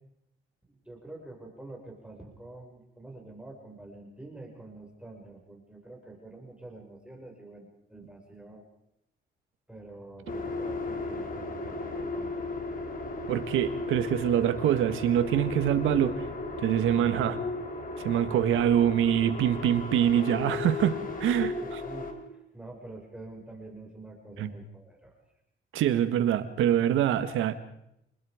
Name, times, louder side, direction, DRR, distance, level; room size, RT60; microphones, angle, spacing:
voice 1, 0.7-8.6 9.7-12.5 21.4-25.1, right 2 dB, 5° right, 0 dB, 6.0 m, -46 dB
sound 1, 10.3-22.1, left 3 dB, 45° left, 4.0 m, -35 dB
voice 2, 13.3-16.3 16.6-17.4 18.0-21.5 24.4-24.5 25.7-27.5, right 10 dB, 85° right, 10 dB, 1.8 m, -25 dB
27.5 x 21.0 x 5.1 m, 0.78 s
cardioid pair, 90°, 20 cm